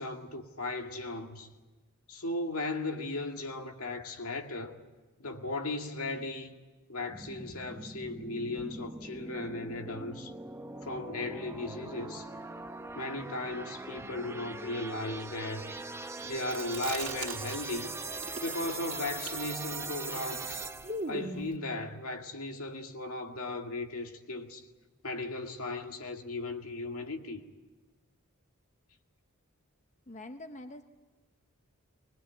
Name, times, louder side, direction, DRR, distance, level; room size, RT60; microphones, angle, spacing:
voice 1, 0.0-1.5 2.1-4.7 5.2-6.6 6.9-10.3 10.8-12.3 12.9-15.6 16.2-18.0 18.4-20.7 21.1-24.6 25.0-27.4, left 2 dB, 75° left, 2.1 m, -36 dB
sound 1, 7.1-21.1, right 3 dB, 10° right, 0.8 m, -41 dB
Chewing mastication, 16.4-17.9 18.1-21.5, right 2 dB, 40° right, 3.0 m, -40 dB
voice 2, 30.1-30.8, left 1 dB, 35° left, 0.9 m, -44 dB
21.0 x 21.0 x 9.2 m
head